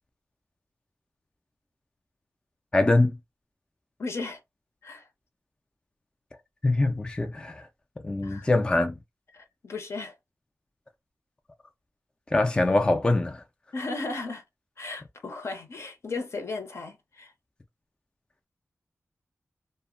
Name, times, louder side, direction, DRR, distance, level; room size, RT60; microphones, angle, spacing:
voice 1, 2.7-3.2 6.6-7.7 8.0-8.9 12.3-13.4, left 2 dB, 15° left, 0.3 m, -23 dB
voice 2, 4.0-4.4 4.8-5.0 8.2-8.5 9.3-10.1 13.7-14.4 14.8-17.3, left 3 dB, 60° left, 0.7 m, -35 dB
2.0 x 2.0 x 3.6 m
wide cardioid pair, 100°, 5 cm